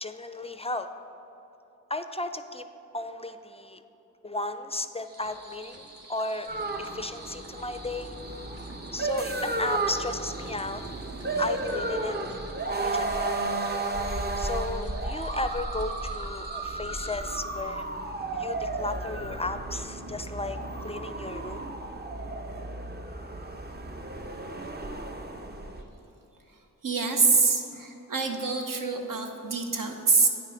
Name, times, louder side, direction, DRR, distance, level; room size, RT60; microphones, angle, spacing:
voice 1, 0.0-0.9 1.9-2.6 2.9-3.8 4.2-6.5 6.8-8.2 8.9-10.8 11.4-12.2 12.7-13.3 14.4-17.9 18.3-21.6, left 2 dB, 20° left, 9 dB, 0.4 m, -34 dB
sound 1, 5.0-17.2, right 2 dB, 45° right, 1.0 m, -49 dB
sound 2, 6.5-25.8, right 2 dB, 30° right, 0.7 m, -33 dB
voice 2, 26.8-30.3, right 4 dB, 70° right, 3 dB, 0.9 m, -25 dB
8.8 x 5.5 x 5.0 m, 3.0 s
cardioid pair, 50°, 34 cm